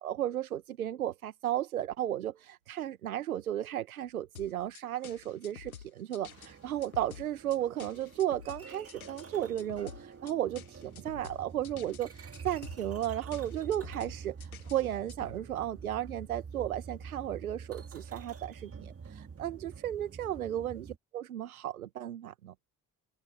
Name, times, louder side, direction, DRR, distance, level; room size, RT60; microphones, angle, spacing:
voice 1, 0.0-22.5, right 12 dB, 80° right, 1.7 m, -34 dB
sound 1, 4.4-15.4, left 8 dB, 85° left, 1.5 m, -50 dB
sound 2, 6.2-21.0, right 5 dB, 35° right, 2.5 m, -47 dB
figure-of-eight pair, 45°, 42 cm